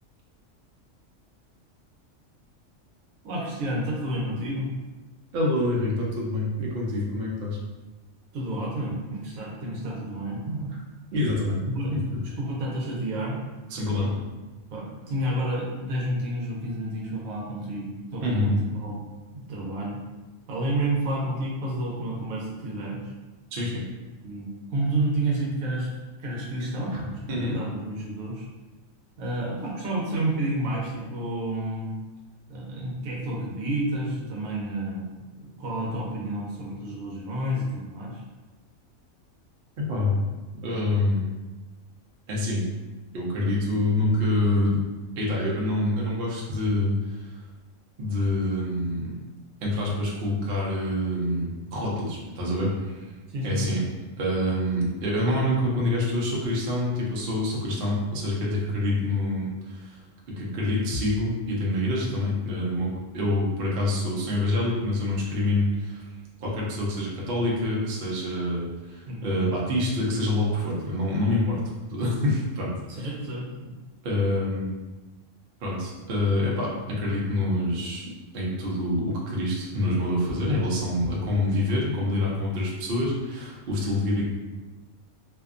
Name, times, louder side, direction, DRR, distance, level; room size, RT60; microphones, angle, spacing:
voice 1, 3.2-4.7 8.3-10.7 11.7-11.9 12.4-13.4 14.7-19.0 19.3-20.0 20.5-23.0 24.2-25.9 26.2-28.5 29.2-31.9 32.5-38.2 53.3-53.6 69.1-69.5 72.9-73.7, right 1 dB, 85° right, -3 dB, 1.1 m, -30 dB
voice 2, 5.3-7.6 11.1-11.6 11.9-12.0 13.7-14.2 18.2-18.6 23.5-23.8 27.3-27.6 39.8-40.2 40.6-41.3 42.3-42.7 43.1-44.8 45.2-47.3 48.0-49.2 49.6-53.1 53.4-53.8 54.2-60.0 60.3-62.9 63.1-66.1 66.4-71.6 71.9-73.1 74.0-74.7 75.6-78.0 78.3-84.2, left 1 dB, 55° right, -4 dB, 0.7 m, -26 dB
2.6 x 2.2 x 2.4 m, 1.2 s
omnidirectional pair, 1.4 m